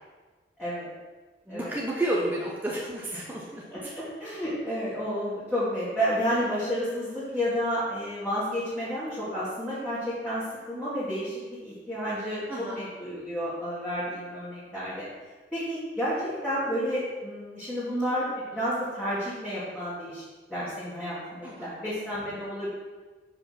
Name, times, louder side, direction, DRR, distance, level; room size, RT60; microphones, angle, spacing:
voice 1, 0.6-0.9 1.5-1.8 3.1-3.2 3.7-15.0 15.5-20.2 20.5-22.7, equal, 5° left, -12 dB, 1.7 m, -31 dB
voice 2, 1.5-3.6 12.5-12.8 21.4-21.7, right 1 dB, 10° right, -4 dB, 0.7 m, -31 dB
5.2 x 4.6 x 5.7 m, 1.3 s
head